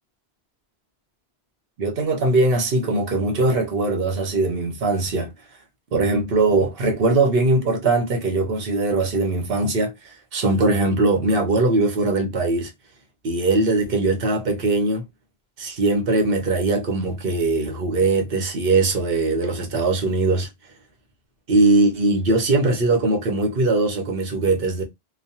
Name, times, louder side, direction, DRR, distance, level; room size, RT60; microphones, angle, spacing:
voice 1, 1.8-5.3 5.9-12.7 13.2-15.0 15.6-20.5 21.5-24.8, right 2 dB, 65° right, 1.0 m, -21 dB
3.1 x 2.0 x 2.7 m
omnidirectional pair, 1.1 m